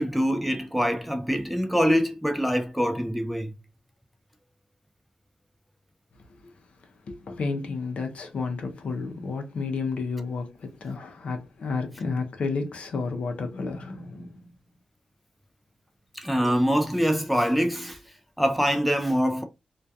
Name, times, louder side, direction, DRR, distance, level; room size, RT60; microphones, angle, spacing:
voice 1, 0.0-3.6 16.1-18.0 18.4-19.4, equal, ahead, 0.4 m, -24 dB
voice 2, 7.1-14.5, left 4 dB, 65° left, 0.5 m, -31 dB
2.3 x 2.2 x 2.6 m
wide cardioid pair, 110°, 2 cm